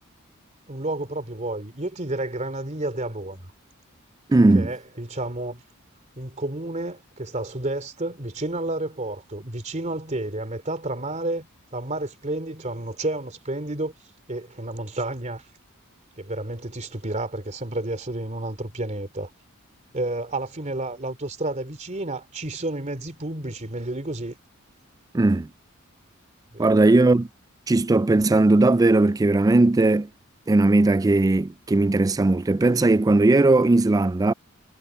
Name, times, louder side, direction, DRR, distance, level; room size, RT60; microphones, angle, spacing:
voice 1, 0.7-3.4 4.5-5.6 6.2-11.5 11.7-13.9 14.3-15.4 16.2-19.3 19.9-24.4 26.5-26.9, right 2 dB, 35° right, 2.9 m, -31 dB
voice 2, 4.3-4.7 25.1-25.5 26.6-27.3 27.7-30.1 30.5-34.3, right 2 dB, 15° right, 0.3 m, -18 dB
head